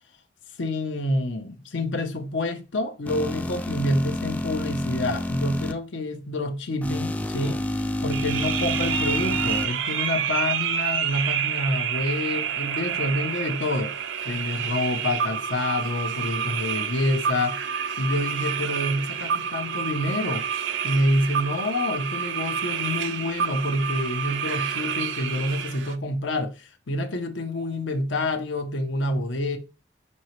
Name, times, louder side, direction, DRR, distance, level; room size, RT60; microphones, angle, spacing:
voice 1, 0.6-13.9 14.2-20.4 20.8-29.6, left 1 dB, 85° left, 0.8 m, -27 dB
sound 1, 3.1-5.7 6.8-9.7, left 1 dB, 10° left, 0.3 m, -29 dB
sound 2, 8.1-25.9, right 8 dB, 85° right, 0.5 m, -28 dB
5.4 x 2.8 x 3.1 m
head